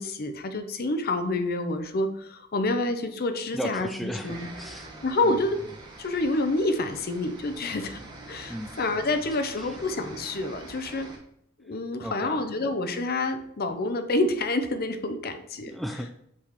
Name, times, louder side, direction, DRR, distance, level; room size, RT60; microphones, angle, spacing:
voice 1, 0.0-4.5 5.0-5.6 6.0-8.0 8.3-11.1 11.6-15.8, left 2 dB, 50° left, 8 dB, 0.7 m, -28 dB
voice 2, 3.5-4.9 8.5-8.7 12.0-12.4 15.7-16.1, equal, ahead, 5 dB, 0.3 m, -35 dB
sound 1, 4.2-11.2, right 2 dB, 20° right, 1.5 m, -45 dB
7.1 x 4.7 x 3.1 m, 0.72 s
head